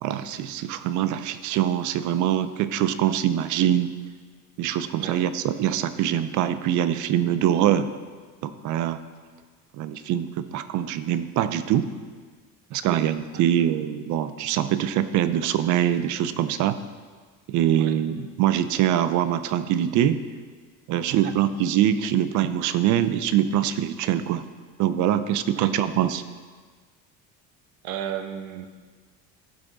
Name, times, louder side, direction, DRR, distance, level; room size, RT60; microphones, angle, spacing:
voice 1, 0.0-3.9 4.6-7.9 8.4-9.0 9.8-11.9 12.7-16.8 17.5-20.2 20.9-24.4 24.8-26.2, right 11 dB, 55° right, 12 dB, 0.6 m, -23 dB
voice 2, 20.9-21.4 25.5-25.7 27.8-28.7, right 9 dB, 85° right, 8 dB, 1.0 m, -34 dB
14.5 x 6.2 x 4.0 m, 1.5 s
cardioid pair, 150°, 36 cm